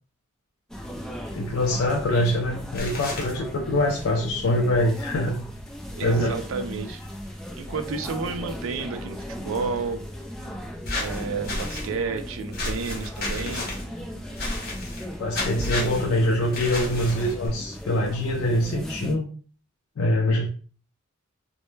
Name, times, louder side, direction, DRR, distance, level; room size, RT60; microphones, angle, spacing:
sound 1, 0.7-19.1, equal, 5° left, 0.3 m, -36 dB
voice 1, 1.3-5.4 6.0-6.4 15.2-19.3 20.0-20.5, left 1 dB, 75° left, 0 dB, 0.4 m, -24 dB
sound 2, 2.7-3.3 10.8-11.9 12.5-13.8 14.4-15.0 15.3-16.0 16.5-17.5, left 2 dB, 45° left, 0.8 m, -31 dB
voice 2, 5.9-7.0 7.6-10.0 10.9-13.7, right 4 dB, 70° right, 8 dB, 0.4 m, -31 dB
2.1 x 2.1 x 3.1 m, 0.39 s
head